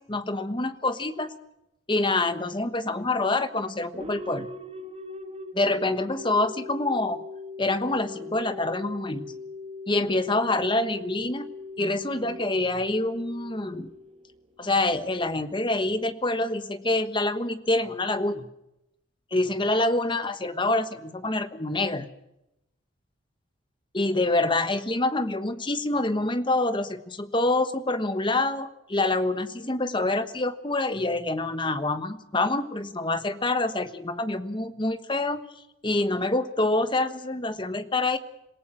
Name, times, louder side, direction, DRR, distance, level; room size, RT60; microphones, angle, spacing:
voice 1, 0.0-1.3 1.9-4.5 5.5-7.2 7.6-9.3 9.9-11.5 11.8-13.9 14.6-18.5 19.3-22.1 23.9-35.4 35.8-38.2, left 2 dB, 25° left, 11 dB, 1.2 m, -26 dB
sound 1, 3.9-14.6, left 3 dB, 30° right, 1.6 m, -40 dB
27.0 x 17.5 x 6.1 m, 0.87 s
head